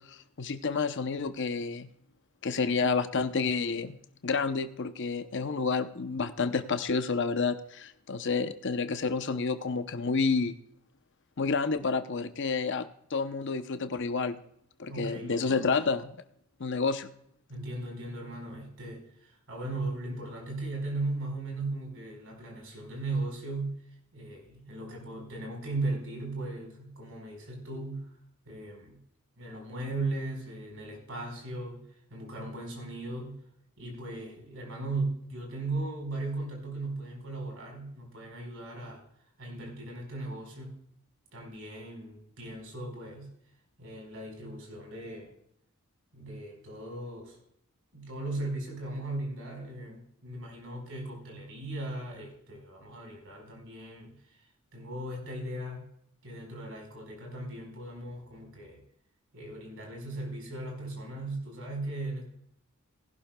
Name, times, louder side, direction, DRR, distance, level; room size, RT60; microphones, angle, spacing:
voice 1, 0.1-1.9 2.4-10.5 11.4-14.4 14.8-16.2 16.6-17.1, left 4 dB, 55° left, 10 dB, 0.7 m, -30 dB
voice 2, 14.9-15.7 17.5-23.8 24.1-28.1 28.4-29.0 29.4-31.8 32.1-33.4 33.8-39.0 39.4-40.7 41.3-43.3 43.8-45.3 46.1-47.4 47.9-54.1 54.7-55.8 56.2-58.8 59.3-62.3, right 2 dB, 65° right, 1 dB, 4.6 m, -37 dB
18.5 x 11.5 x 2.3 m, 0.72 s
head